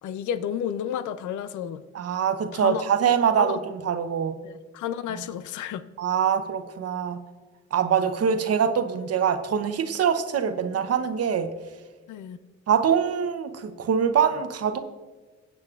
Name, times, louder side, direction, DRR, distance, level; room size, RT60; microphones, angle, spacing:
voice 1, 0.0-1.8 2.5-2.8 3.4-3.6 4.4-5.8 12.1-12.4, left 9 dB, 75° left, 12 dB, 0.6 m, -31 dB
voice 2, 1.9-4.4 5.1-5.2 6.0-7.2 7.7-11.5 12.7-14.8, right 7 dB, 55° right, 9 dB, 0.8 m, -24 dB
16.5 x 8.3 x 2.4 m, 1.3 s
cardioid pair, 90°, 30 cm